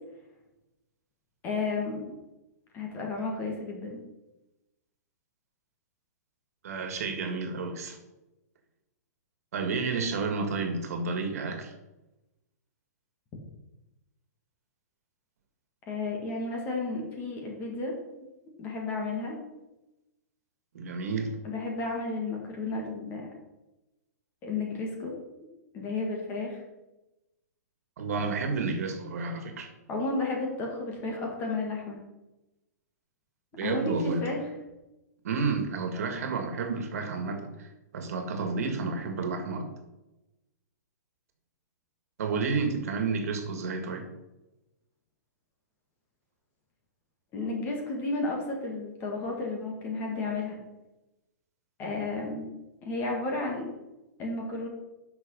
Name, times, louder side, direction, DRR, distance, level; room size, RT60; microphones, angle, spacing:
voice 1, 1.4-2.0 2.7-4.0 15.9-17.9 18.6-19.4 21.4-23.3 24.4-25.1 25.7-26.6 29.9-32.0 33.6-34.4 47.3-50.6 51.8-52.5 52.8-53.7 54.2-54.7, left 3 dB, 20° left, 0 dB, 1.7 m, -32 dB
voice 2, 6.6-8.0 9.5-11.7 20.7-21.3 28.0-29.7 33.6-34.3 35.2-39.7 42.2-44.1, right 4 dB, 60° right, 6 dB, 1.9 m, -31 dB
8.8 x 6.1 x 5.4 m, 1.0 s
hypercardioid pair, 165°, 9 cm